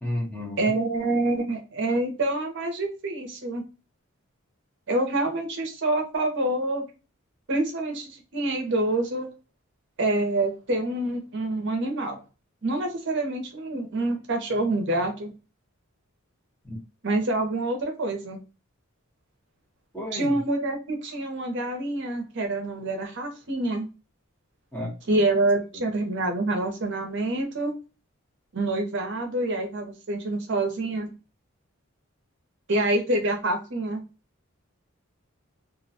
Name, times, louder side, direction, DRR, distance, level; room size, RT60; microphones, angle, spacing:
voice 1, 0.0-0.7 16.6-16.8 19.9-20.4 24.7-24.9, left 1 dB, 5° left, 0.8 m, -32 dB
voice 2, 0.6-3.6 4.9-6.9 7.5-9.3 10.0-12.2 12.6-15.3 17.0-18.4 20.1-23.9 25.1-27.7 28.5-31.1 32.7-34.0, right 2 dB, 55° right, 0.6 m, -26 dB
2.4 x 2.1 x 2.6 m
head